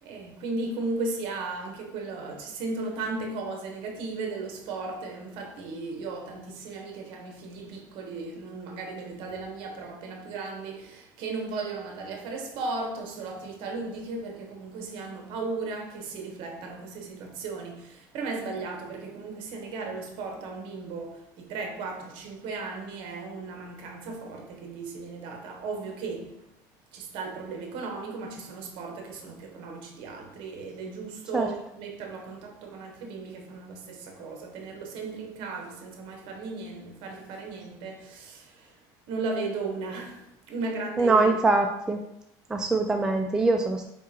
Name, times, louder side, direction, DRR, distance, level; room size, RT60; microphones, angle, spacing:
voice 1, 0.0-26.4 26.9-38.8 39.1-41.4, right 3 dB, 60° right, 0.9 m, -36 dB
voice 2, 41.0-42.0 42.5-43.8, right 3 dB, 5° right, 0.3 m, -23 dB
4.7 x 3.6 x 2.8 m
cardioid pair, 130°, 10 cm